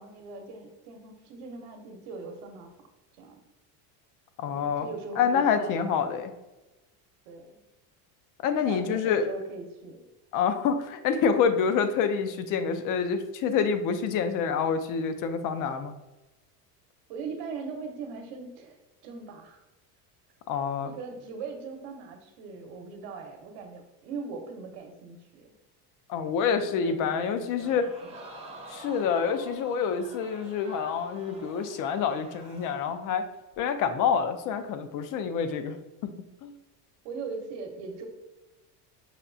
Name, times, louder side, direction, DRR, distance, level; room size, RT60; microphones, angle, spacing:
voice 1, 0.0-2.7 3.2-3.4 4.5-6.0 7.2-7.6 8.6-10.0 17.1-18.8 19.0-19.6 20.8-25.5 26.4-28.1 37.0-38.1, right 4 dB, 70° right, 4 dB, 1.0 m, -40 dB
voice 2, 4.4-4.9 5.2-6.3 8.4-9.3 10.3-15.9 20.5-20.9 26.1-27.9 28.7-33.2 33.6-35.8 36.4-36.5, left 6 dB, 45° left, 9 dB, 0.4 m, -27 dB
Crowd, 27.6-33.1 33.5-33.6, right 1 dB, 15° right, 0.7 m, -47 dB
5.7 x 2.3 x 2.5 m, 1.1 s
supercardioid pair, 115°, 47 cm